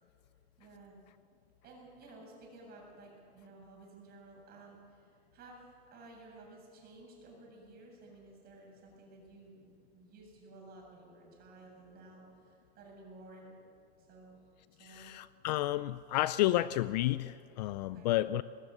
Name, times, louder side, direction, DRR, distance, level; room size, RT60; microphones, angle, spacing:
voice 1, 0.6-1.0 1.6-13.6 14.0-14.4 14.8-15.1 17.8-18.1, right 2 dB, 30° right, -1 dB, 7.6 m, -54 dB
voice 2, 14.8-18.4, left 15 dB, 45° left, 16 dB, 0.4 m, -31 dB
20.0 x 18.5 x 7.9 m, 2.4 s
hypercardioid pair, 140°, 32 cm